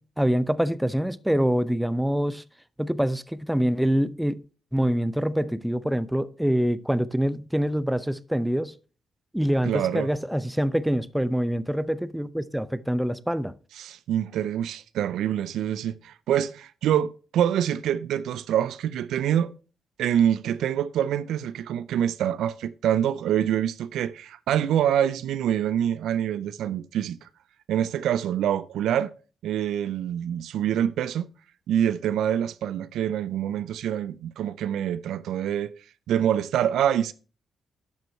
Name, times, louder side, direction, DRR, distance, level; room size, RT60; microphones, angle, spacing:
voice 1, 0.0-2.4 2.8-4.4 4.7-8.7 9.3-13.5, equal, 5° right, 0.7 m, -25 dB
voice 2, 9.6-10.1 13.8-19.5 20.0-27.3 27.7-29.1 29.4-31.3 31.7-35.7 36.1-37.1, right 10 dB, 75° right, 0.4 m, -25 dB
11.5 x 5.3 x 4.4 m
supercardioid pair, 50°, 0 cm